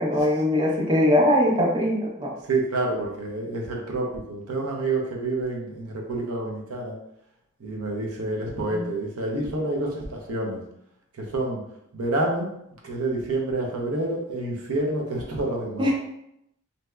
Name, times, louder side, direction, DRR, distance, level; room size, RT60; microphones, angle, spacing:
voice 1, 0.0-2.3 8.7-8.8 15.8-15.9, left 1 dB, 20° right, -1 dB, 0.5 m, -21 dB
voice 2, 2.5-6.9 7.6-10.6 11.2-11.6 11.9-12.5 12.8-15.9, right 2 dB, 85° right, 0 dB, 0.7 m, -28 dB
3.2 x 2.7 x 2.3 m, 0.78 s
head